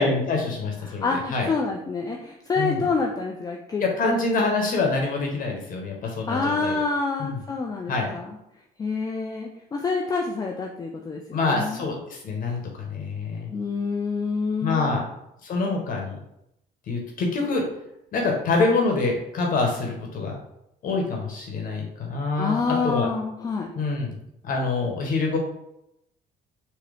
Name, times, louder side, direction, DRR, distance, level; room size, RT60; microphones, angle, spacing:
voice 1, 0.0-1.5 2.6-2.8 3.8-6.8 7.2-7.4 7.9-8.1 11.3-13.5 14.6-15.0 15.4-16.2 16.9-17.6 18.1-20.4 20.8-23.1 23.7-24.1 24.4-25.4, left 3 dB, 55° left, 0 dB, 1.0 m, -25 dB
voice 2, 0.8-4.1 6.3-8.3 8.8-11.9 13.5-15.0 22.4-23.7, left 4 dB, 20° left, 1 dB, 0.4 m, -27 dB
3.7 x 2.8 x 3.3 m, 0.82 s
cardioid pair, 110°, 17 cm